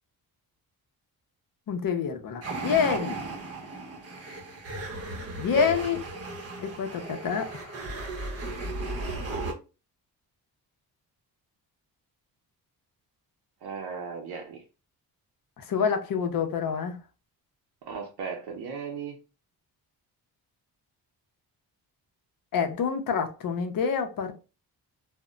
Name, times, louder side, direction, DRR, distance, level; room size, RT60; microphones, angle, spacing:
voice 1, 1.7-3.2 5.4-6.0 6.6-7.8 15.6-17.0 22.5-24.3, left 6 dB, 60° left, 0.6 m, -27 dB
sound 1, 2.4-9.5, right 2 dB, 40° right, 0.7 m, -36 dB
voice 2, 8.7-9.3 13.6-14.6 17.8-19.2, right 5 dB, 75° right, 0.6 m, -36 dB
2.1 x 2.1 x 3.7 m
wide cardioid pair, 135°, 39 cm